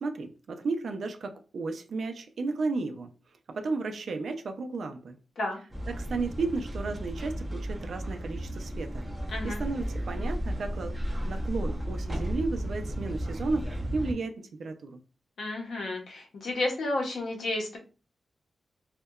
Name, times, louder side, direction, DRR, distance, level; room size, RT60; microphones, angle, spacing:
voice 1, 0.0-3.1 3.5-5.2 5.9-9.0 9.4-11.0 11.3-15.0, right 3 dB, 60° right, 0.3 m, -33 dB
sound 1, 5.7-14.1, equal, 5° right, 0.7 m, -34 dB
voice 2, 9.3-9.6 15.4-17.8, left 2 dB, 70° left, 0.7 m, -31 dB
2.7 x 2.1 x 2.3 m
wide cardioid pair, 175°, 0 cm